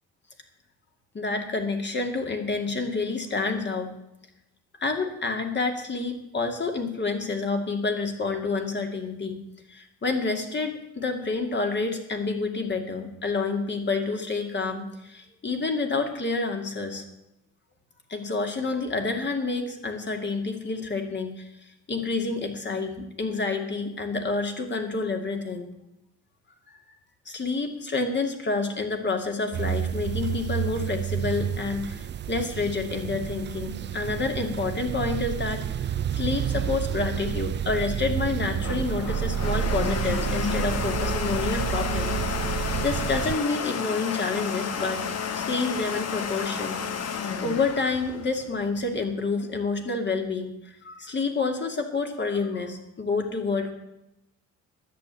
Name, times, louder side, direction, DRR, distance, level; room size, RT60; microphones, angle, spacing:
voice 1, 1.1-3.9 4.8-9.4 9.7-17.0 18.1-21.5 21.9-25.7 26.7-26.8 27.3-42.2 42.8-45.0 45.3-46.8 47.4-53.7, left 3 dB, 35° left, 4 dB, 2.4 m, -28 dB
sound 1, 29.5-43.4, right 9 dB, 40° right, 0.4 m, -30 dB
Domestic sounds home sounds, 38.3-49.0, left 7 dB, 55° left, 1.3 m, -31 dB
11.0 x 8.2 x 8.2 m, 0.89 s
cardioid pair, 90°, 30 cm